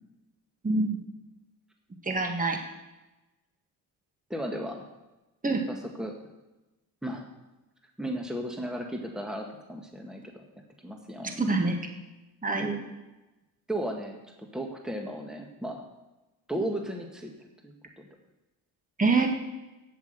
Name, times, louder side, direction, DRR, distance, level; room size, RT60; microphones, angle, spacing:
voice 1, 0.6-1.0 2.0-2.6 5.4-5.6 11.4-11.8 12.4-12.8 19.0-19.3, right 3 dB, 20° right, 4 dB, 1.8 m, -25 dB
voice 2, 4.3-4.9 5.7-6.2 7.0-7.3 8.0-10.3 10.8-11.5 13.7-15.8 16.5-17.3 17.6-18.1, right 1 dB, ahead, 2 dB, 1.7 m, -35 dB
8.6 x 8.1 x 7.9 m, 1.0 s
supercardioid pair, 65°, 40 cm